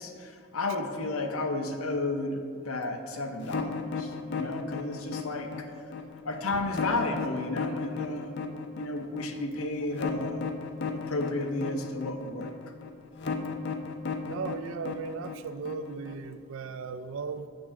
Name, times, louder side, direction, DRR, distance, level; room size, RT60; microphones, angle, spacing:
voice 1, 0.0-5.7 6.2-8.4 8.7-10.4 10.9-12.5, left 2 dB, 85° left, 5 dB, 0.8 m, -32 dB
sound 1, 3.4-16.3, left 5 dB, 55° left, 0.5 m, -35 dB
voice 2, 14.2-17.5, right 5 dB, 70° right, 12 dB, 0.4 m, -37 dB
7.8 x 3.6 x 6.3 m, 2.3 s
head